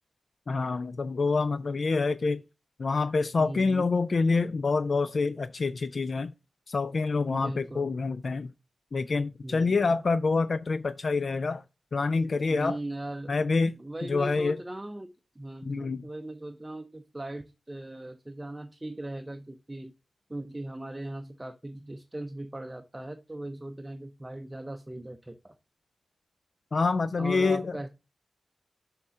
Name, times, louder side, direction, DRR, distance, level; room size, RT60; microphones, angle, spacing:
voice 1, 0.5-2.4 2.8-6.3 6.7-8.5 8.9-11.6 11.9-12.8 13.3-13.8 14.0-14.6 15.6-16.0 26.7-27.8, left 4 dB, 55° left, 0.4 m, -27 dB
voice 2, 3.4-3.9 7.3-7.9 9.4-10.0 12.5-13.4 13.8-19.9 20.3-25.6 27.2-27.9, right 1 dB, 15° right, 0.6 m, -39 dB
6.6 x 3.6 x 5.6 m
wide cardioid pair, 120°, 0 cm